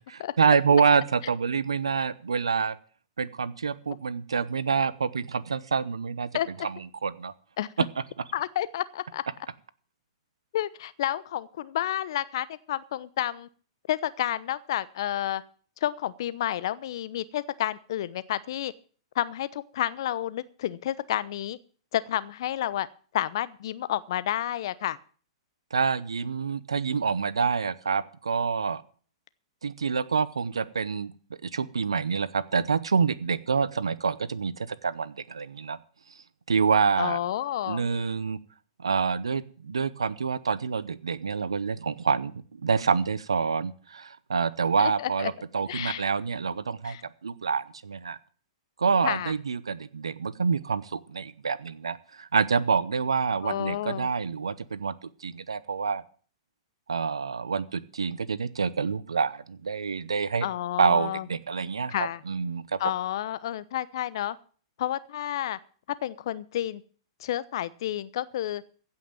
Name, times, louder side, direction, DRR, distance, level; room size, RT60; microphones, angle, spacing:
voice 1, 0.4-2.8 3.2-6.3 6.6-7.3 25.7-28.8 29.6-31.1 31.4-35.8 36.5-37.2 37.7-38.4 38.8-42.3 42.6-47.0 47.2-48.2 48.8-56.0 56.9-60.5 60.8-62.8, right 5 dB, 85° right, 0.8 m, -27 dB
voice 2, 8.3-9.2 10.5-13.5 13.9-15.4 15.8-18.7 19.1-21.6 21.9-22.9 23.1-25.0 37.0-37.9 44.8-45.3 45.7-46.0 46.8-47.0 49.0-49.3 53.4-54.1 60.4-61.3 61.9-62.2 62.8-64.4 64.8-65.6 66.0-66.8 67.2-68.6, left 12 dB, 60° left, 0.9 m, -30 dB
16.0 x 5.8 x 9.0 m
hypercardioid pair, 115°, 3 cm